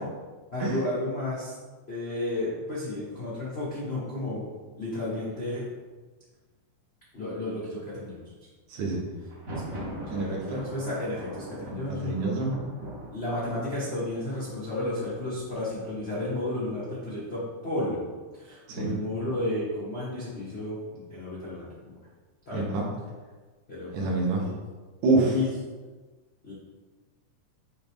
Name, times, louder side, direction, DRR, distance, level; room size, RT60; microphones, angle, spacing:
voice 1, 0.5-1.5 1.9-4.4 4.8-5.7 7.1-8.2 9.5-12.2 13.1-18.0 18.3-20.8 21.1-21.9 22.5-22.7 23.7-24.5 25.2-25.5 26.4-26.5, left 1 dB, 70° left, -9 dB, 0.5 m, -32 dB
voice 2, 8.7-9.1 10.1-10.6 11.9-12.5 18.7-19.0 22.5-22.9 23.9-24.4 25.0-25.3, right 3 dB, 75° right, -2 dB, 2.5 m, -26 dB
Thunder, 9.2-17.0, right 1 dB, 45° right, 1.0 m, -42 dB
7.7 x 3.8 x 3.6 m, 1.3 s
omnidirectional pair, 3.6 m